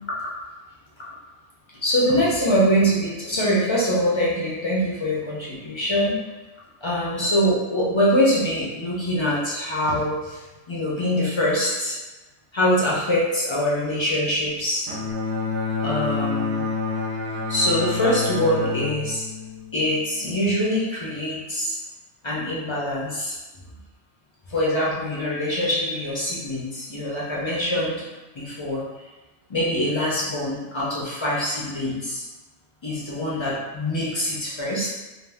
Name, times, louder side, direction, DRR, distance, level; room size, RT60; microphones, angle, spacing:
voice 1, 1.8-6.2 6.8-12.0 12.5-14.9 15.8-16.6 17.5-19.3 19.7-21.8 22.2-23.4 24.5-28.1 28.3-28.8 29.5-32.2 32.8-34.9, equal, 50° left, -6 dB, 0.3 m, -24 dB
Bowed string instrument, 14.9-20.3, left 4 dB, 80° right, 0.9 m, -28 dB
2.6 x 2.0 x 3.2 m, 1.1 s
omnidirectional pair, 1.2 m